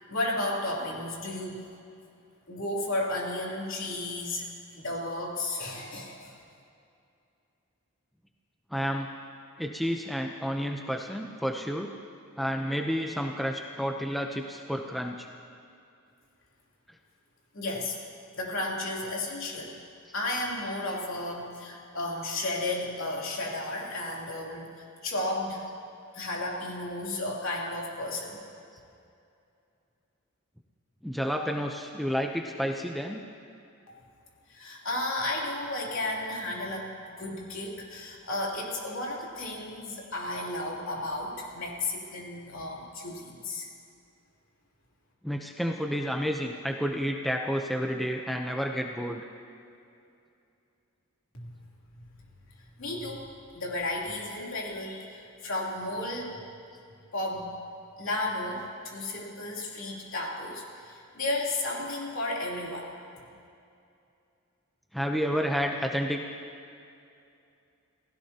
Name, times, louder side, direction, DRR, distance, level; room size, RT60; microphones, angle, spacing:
voice 1, 0.1-1.6 2.5-4.5 4.7-6.3 17.5-18.0 18.3-19.7 20.1-25.7 26.1-28.4 33.9-34.0 34.5-36.9 37.2-43.7 51.3-51.5 52.0-52.1 52.8-53.3 53.5-56.3 57.1-57.5 58.0-62.9, left 2 dB, 65° left, -3 dB, 3.2 m, -33 dB
voice 2, 8.7-9.1 9.6-11.9 12.4-15.3 31.0-33.2 45.2-49.2 64.9-66.2, equal, ahead, 2 dB, 0.7 m, -30 dB
28.5 x 16.5 x 2.9 m, 2.5 s
head